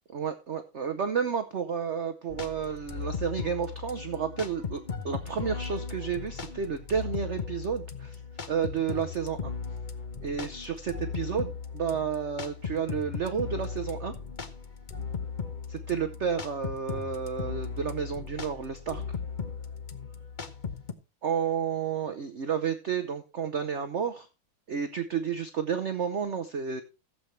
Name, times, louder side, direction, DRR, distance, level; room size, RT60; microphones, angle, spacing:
voice 1, 0.1-8.2 8.5-9.5 10.2-14.1 15.7-19.0 21.2-24.3 24.7-26.8, right 7 dB, 55° right, 9 dB, 0.7 m, -31 dB
sound 1, 2.3-20.9, left 5 dB, 45° left, 0.6 m, -37 dB
15.0 x 8.0 x 3.2 m, 0.29 s
omnidirectional pair, 2.3 m